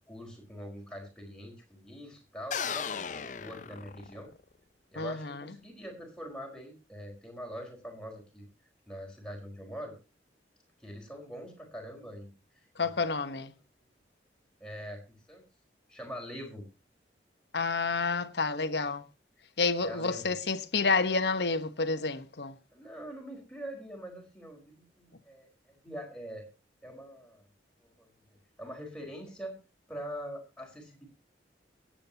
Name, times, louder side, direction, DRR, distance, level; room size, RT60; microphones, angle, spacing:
voice 1, 0.1-4.3 4.9-8.4 8.9-9.9 10.8-12.3 12.8-13.0 14.6-15.4 15.9-16.6 19.8-20.3 22.7-26.5 26.8-27.4 27.8-29.6 29.9-31.1, equal, 5° left, 4.4 m, -44 dB
sound 1, 2.5-4.4, left 7 dB, 45° left, 0.6 m, -36 dB
voice 2, 5.0-5.5 12.8-13.5 17.5-19.0 19.6-22.5, left 4 dB, 70° left, 1.2 m, -29 dB
23.0 x 8.8 x 2.9 m
head